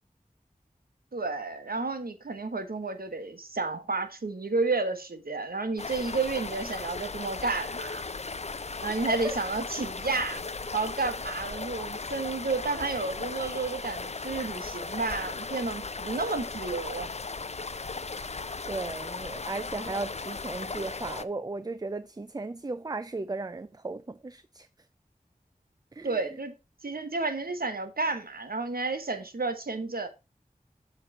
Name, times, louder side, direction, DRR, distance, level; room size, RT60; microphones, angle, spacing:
voice 1, 1.1-8.0 8.8-10.4 10.7-17.1 26.0-26.5 26.8-30.1, right 3 dB, 90° right, 1.0 m, -31 dB
sound 1, 5.8-21.2, left 4 dB, 50° left, 0.5 m, -37 dB
voice 2, 18.7-24.7 25.9-26.4, right 3 dB, 25° right, 0.4 m, -36 dB
7.4 x 4.6 x 4.6 m
wide cardioid pair, 50°, 15 cm